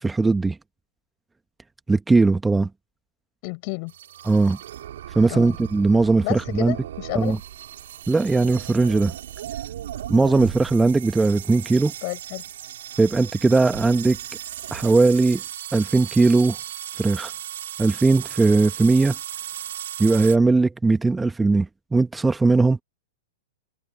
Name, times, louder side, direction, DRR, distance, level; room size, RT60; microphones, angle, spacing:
voice 1, 0.0-0.6 1.9-2.7 4.2-4.6 5.1-6.7 7.1-7.4 8.1-9.1 10.1-11.9 13.0-14.2 14.7-15.4 15.7-16.6 17.0-17.3 17.8-19.1 20.0-22.8, right 3 dB, 10° right, 1.3 m, -19 dB
voice 2, 3.4-3.9 5.3-5.6 6.2-7.4 12.0-12.4, left 35 dB, 45° left, 6.5 m, -31 dB
sound 1, 3.9-20.4, right 11 dB, 65° right, 3.5 m, -36 dB
figure-of-eight pair, 105°, 0 cm